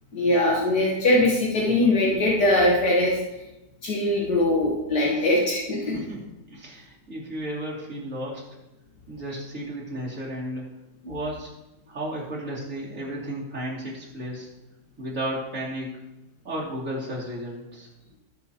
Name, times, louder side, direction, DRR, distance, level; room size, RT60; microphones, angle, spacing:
voice 1, 0.1-3.4 3.8-6.0 11.0-11.1, left 1 dB, 75° left, -3 dB, 2.0 m, -22 dB
voice 2, 6.5-8.4 9.1-10.6 11.1-11.5 11.9-14.5 15.0-15.9 16.4-17.9, right 1 dB, 50° right, -6 dB, 3.3 m, -33 dB
19.5 x 6.9 x 3.0 m, 0.95 s
omnidirectional pair, 1.8 m